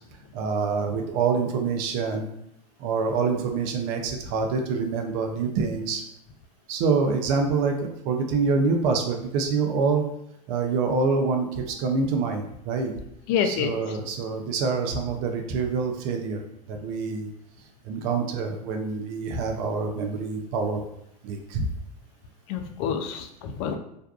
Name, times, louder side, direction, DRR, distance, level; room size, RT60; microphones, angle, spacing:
voice 1, 0.3-2.3 2.8-6.0 6.7-10.0 10.5-12.9 13.4-16.4 16.7-17.3 17.8-20.8 21.2-21.7, right 4 dB, 55° right, 4 dB, 0.5 m, -26 dB
voice 2, 13.3-14.0 22.5-23.8, left 7 dB, 55° left, 6 dB, 0.4 m, -27 dB
2.5 x 2.2 x 2.3 m, 0.79 s
hypercardioid pair, 95°, 21 cm